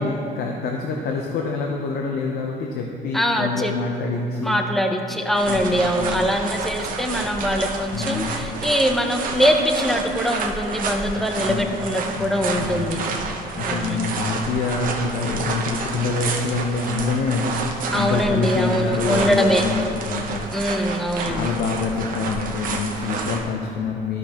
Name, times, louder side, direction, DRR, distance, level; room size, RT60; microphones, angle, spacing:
voice 1, 0.0-4.6 5.4-6.2 7.9-8.5 11.1-11.7 12.2-20.5 21.2-24.2, left 4 dB, 70° left, 1 dB, 0.7 m, -26 dB
voice 2, 3.1-3.7 4.4-13.0 13.6-14.1 17.9-19.6 20.5-21.6, equal, ahead, 4 dB, 0.6 m, -22 dB
sound 1, 5.3-23.4, right 4 dB, 55° right, 0.8 m, -29 dB
12.0 x 6.1 x 2.9 m, 2.7 s
cardioid pair, 110°, 17 cm